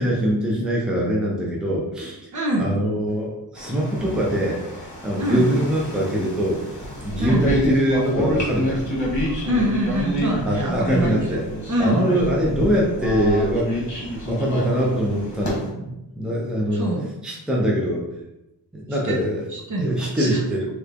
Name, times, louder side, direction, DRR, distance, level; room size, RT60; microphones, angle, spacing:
voice 1, 0.0-2.2 2.6-4.6 5.0-6.7 7.0-8.8 10.5-11.4 11.8-16.9 17.2-18.1 18.7-19.4 19.8-20.7, equal, ahead, -3 dB, 0.6 m, -23 dB
voice 2, 2.3-2.8 5.2-5.5 7.2-7.4 9.4-11.4 11.7-12.0 16.7-17.0 18.9-19.3 19.5-20.4, right 1 dB, 45° right, -2 dB, 0.8 m, -24 dB
sound 1, 3.6-15.7, equal, 45° left, 1.2 m, -28 dB
3.3 x 3.0 x 2.5 m, 0.90 s
wide cardioid pair, 110°, 42 cm